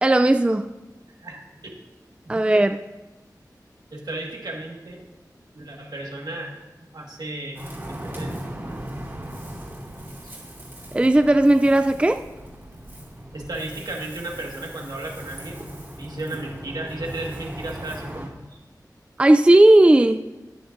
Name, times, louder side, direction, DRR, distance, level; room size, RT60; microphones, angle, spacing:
voice 1, 0.0-0.7 2.3-2.8 10.9-12.2 19.2-20.3, right 1 dB, 15° right, 8 dB, 0.3 m, -16 dB
voice 2, 1.2-1.7 2.2-2.6 3.9-5.1 5.5-6.6 6.9-8.8 10.2-10.4 13.3-15.6 15.9-18.6, right 2 dB, 70° right, 0 dB, 1.7 m, -35 dB
Ocean, 7.5-18.3, right 1 dB, 30° right, 2.7 m, -38 dB
14.0 x 9.5 x 2.6 m, 1.1 s
wide cardioid pair, 75°, 7 cm